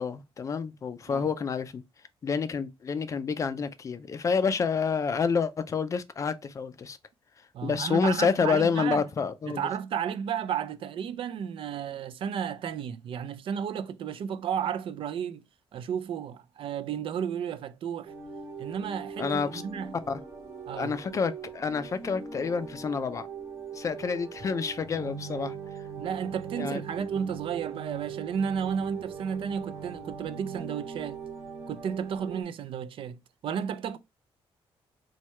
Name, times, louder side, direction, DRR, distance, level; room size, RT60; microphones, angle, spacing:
voice 1, 0.0-1.8 2.2-7.0 7.6-9.7 19.2-19.6 20.1-20.2 20.8-23.3 23.7-25.5 26.6-26.8, left 5 dB, 30° left, 0.4 m, -28 dB
voice 2, 7.5-9.0 9.5-15.4 15.7-18.1 18.6-19.9 20.7-21.0 26.0-31.2 31.7-34.0, right 8 dB, 60° right, 0.4 m, -33 dB
sound 1, 18.0-32.4, right 6 dB, 25° right, 1.0 m, -40 dB
4.6 x 2.3 x 4.2 m
wide cardioid pair, 170°, 10 cm